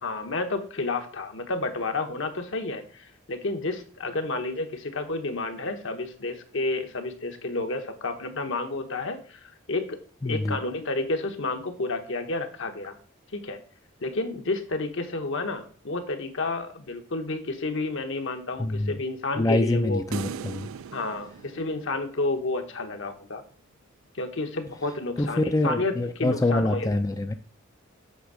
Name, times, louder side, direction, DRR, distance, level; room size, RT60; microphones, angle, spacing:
voice 1, 0.0-10.0 10.2-13.0 13.3-13.6 14.0-20.0 20.9-23.4 24.1-27.0, left 2 dB, 65° left, 6 dB, 1.1 m, -30 dB
voice 2, 10.2-10.6 18.6-19.0 19.4-20.7 25.2-27.3, left 2 dB, 15° left, 7 dB, 0.4 m, -25 dB
sound 1, 20.1-22.5, right 6 dB, 75° right, 0.3 m, -38 dB
8.1 x 3.6 x 6.2 m, 0.41 s
head